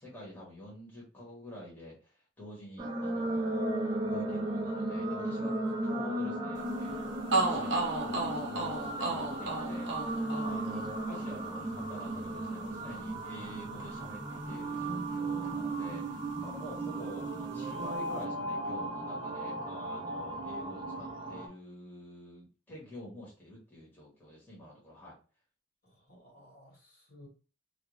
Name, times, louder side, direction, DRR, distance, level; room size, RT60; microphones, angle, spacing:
voice 1, 0.0-5.5 5.8-10.1 10.4-25.2, left 1 dB, 10° left, 1.0 m, -48 dB
sound 1, 2.8-21.5, right 2 dB, 25° right, 0.5 m, -35 dB
sound 2, 6.9-7.0 7.3-15.2 15.4-16.6, right 2 dB, 70° right, 0.7 m, -36 dB
voice 2, 25.8-27.3, left 1 dB, 55° left, 1.2 m, -57 dB
2.4 x 2.3 x 3.0 m
head